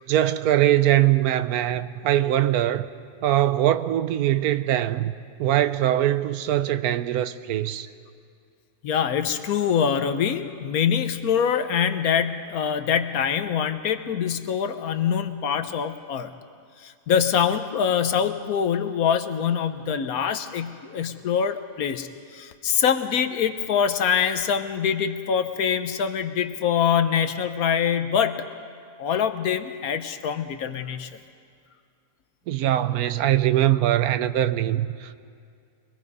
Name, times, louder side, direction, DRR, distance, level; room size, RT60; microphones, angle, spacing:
voice 1, 0.0-2.9 3.2-5.1 5.4-7.9 32.5-35.1, right 12 dB, 80° right, 1.1 m, -22 dB
voice 2, 8.8-16.3 16.8-28.5 29.0-31.1, left 7 dB, 75° left, 1.3 m, -24 dB
24.5 x 21.0 x 5.4 m
omnidirectional pair, 1.6 m